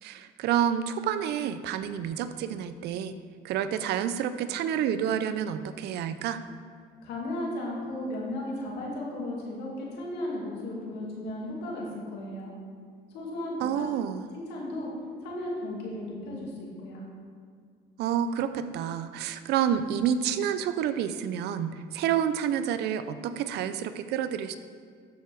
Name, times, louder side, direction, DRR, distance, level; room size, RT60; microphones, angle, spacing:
voice 1, 0.0-3.1 3.4-6.4 13.6-14.3 18.0-24.6, right 9 dB, 75° right, 11 dB, 0.5 m, -29 dB
voice 2, 7.0-12.5 13.1-13.9 14.3-14.9 15.2-17.1, left 1 dB, 85° left, -3 dB, 2.4 m, -35 dB
12.5 x 4.7 x 4.6 m, 2.1 s
cardioid pair, 110°, 17 cm